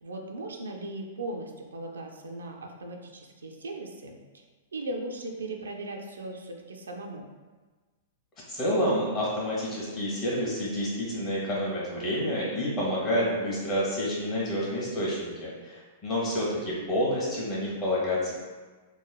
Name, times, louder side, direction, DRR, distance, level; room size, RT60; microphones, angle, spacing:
voice 1, 0.0-4.4 4.7-7.3, right 2 dB, 90° right, 2 dB, 0.3 m, -38 dB
voice 2, 8.5-18.3, equal, 35° left, -6 dB, 1.1 m, -29 dB
3.1 x 2.1 x 2.3 m, 1.3 s
hypercardioid pair, 115°, 0 cm